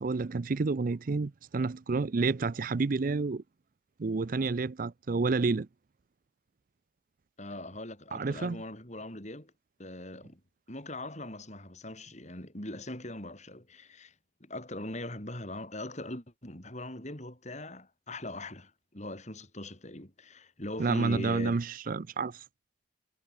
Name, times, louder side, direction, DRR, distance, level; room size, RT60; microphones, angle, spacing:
voice 1, 0.0-3.4 4.0-5.7 8.1-8.6 20.8-22.4, right 4 dB, 50° right, 0.5 m, -29 dB
voice 2, 7.4-9.5 9.8-10.4 10.7-14.1 14.4-21.6, left 1 dB, 40° left, 5.6 m, -41 dB
head